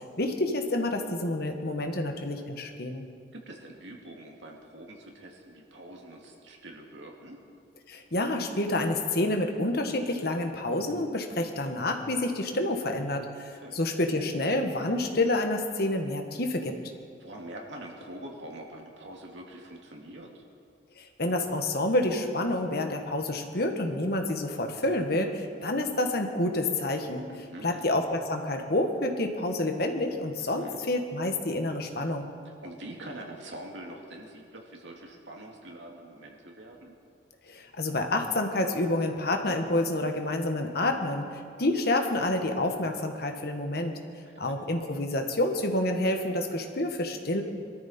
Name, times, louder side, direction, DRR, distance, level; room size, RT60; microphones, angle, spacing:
voice 1, 0.2-3.0 7.9-16.8 21.0-27.3 27.6-32.3 37.5-44.0 44.4-47.4, left 1 dB, 55° left, 4 dB, 1.5 m, -28 dB
voice 2, 3.3-7.4 13.6-13.8 17.2-20.4 27.3-27.9 30.4-30.8 32.4-36.9 44.3-44.5, right 1 dB, 75° right, 0 dB, 2.5 m, -44 dB
22.5 x 13.5 x 4.4 m, 2.2 s
head